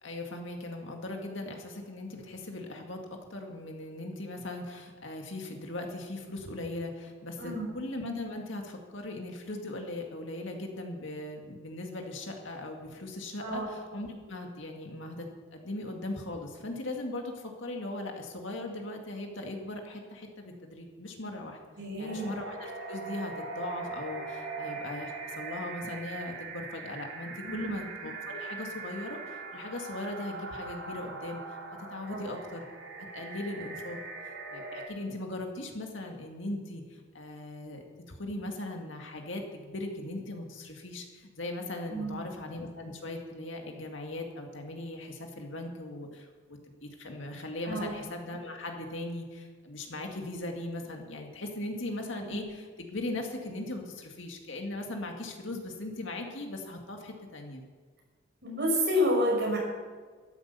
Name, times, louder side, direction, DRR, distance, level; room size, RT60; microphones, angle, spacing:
voice 1, 0.0-3.0 3.3-21.6 22.0-32.6 33.1-34.0 34.5-57.6, left 2 dB, 65° left, 2 dB, 2.1 m, -39 dB
voice 2, 7.4-7.7 13.4-13.7 21.8-22.3 27.4-27.7 32.1-32.3 41.9-42.2 47.6-47.9 52.3-52.4 58.4-59.6, equal, 50° right, -2 dB, 5.7 m, -29 dB
Deep Space, 22.0-34.9, right 4 dB, 75° right, 4.0 m, -41 dB
13.0 x 11.0 x 6.9 m, 1.5 s
head